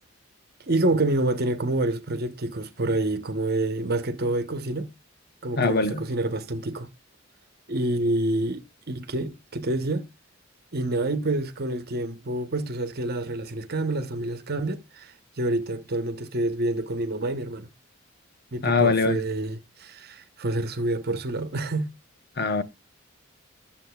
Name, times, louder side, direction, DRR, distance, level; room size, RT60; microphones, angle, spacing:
voice 1, 0.7-4.9 5.4-6.9 7.7-10.1 10.7-17.7 18.5-21.9, right 2 dB, 50° right, 1.0 m, -27 dB
voice 2, 5.6-6.0 18.6-19.2 22.4-22.6, left 4 dB, 55° left, 0.8 m, -22 dB
12.0 x 7.4 x 2.3 m
head